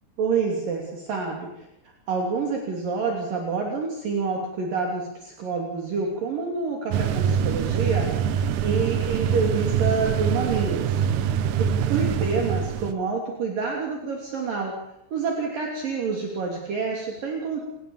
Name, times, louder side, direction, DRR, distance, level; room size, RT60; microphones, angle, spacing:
voice 1, 0.2-1.7 2.1-14.7 15.1-17.6, right 4 dB, 55° right, 0 dB, 4.5 m, -28 dB
sound 1, 6.9-12.9, right 8 dB, 90° right, 1.7 m, -24 dB
29.5 x 20.5 x 7.3 m, 0.89 s
omnidirectional pair, 5.1 m